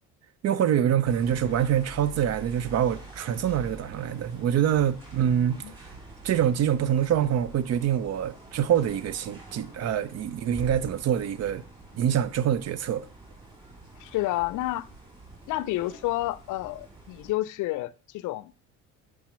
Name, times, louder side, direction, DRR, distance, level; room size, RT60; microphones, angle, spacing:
voice 1, 0.4-5.6 6.2-11.6 11.9-13.1, right 9 dB, 50° right, 0.5 m, -25 dB
sound 1, 1.0-17.3, right 2 dB, 15° right, 2.7 m, -46 dB
voice 2, 5.2-5.7 14.0-14.9 15.5-18.5, left 17 dB, 60° left, 0.5 m, -30 dB
7.1 x 4.7 x 3.0 m
supercardioid pair, 80°, 34 cm